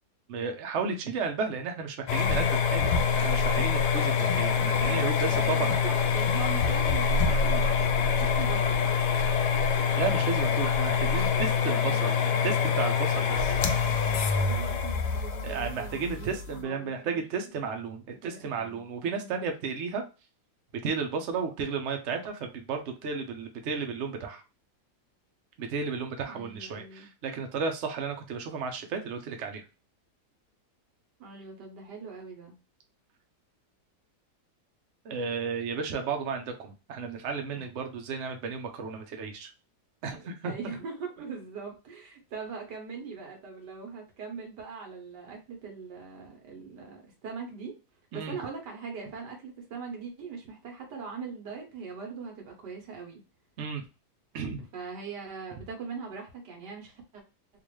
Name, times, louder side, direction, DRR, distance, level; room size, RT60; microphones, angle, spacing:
voice 1, 0.3-5.7 9.9-13.6 15.4-20.0 20.8-24.4 25.6-29.6 35.0-39.5 40.0-40.5 48.1-48.3 53.6-53.8 54.3-54.6, right 5 dB, 55° right, 4 dB, 0.9 m, -33 dB
sound 1, 2.1-16.6, left 6 dB, 85° left, 1.3 m, -25 dB
voice 2, 4.5-9.0 11.7-12.4 13.9-17.2 18.2-19.4 26.3-27.1 31.2-32.6 37.5-37.7 40.4-47.8 48.1-53.2 54.7-57.2, right 5 dB, 90° right, 2 dB, 1.8 m, -41 dB
3.8 x 2.6 x 3.1 m, 0.30 s
omnidirectional pair, 1.8 m